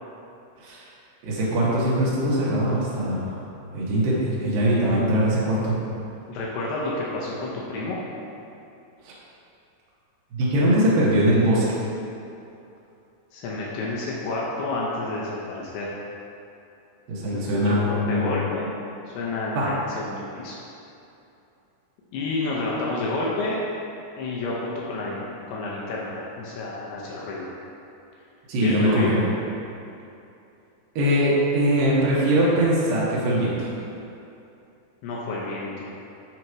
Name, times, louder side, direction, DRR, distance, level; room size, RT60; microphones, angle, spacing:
voice 1, 1.2-3.4 3.7-5.8 9.0-9.1 10.3-11.6 17.1-18.3 19.6-19.7 28.5-29.2 31.0-33.7, right 1 dB, 70° right, -7 dB, 2.2 m, -21 dB
voice 2, 6.3-8.0 13.3-16.0 17.3-18.7 19.2-20.6 22.1-23.6 24.2-27.5 28.6-29.1 35.0-35.9, left 2 dB, 85° left, -5 dB, 2.3 m, -30 dB
9.0 x 3.0 x 4.7 m, 2.7 s
omnidirectional pair, 5.6 m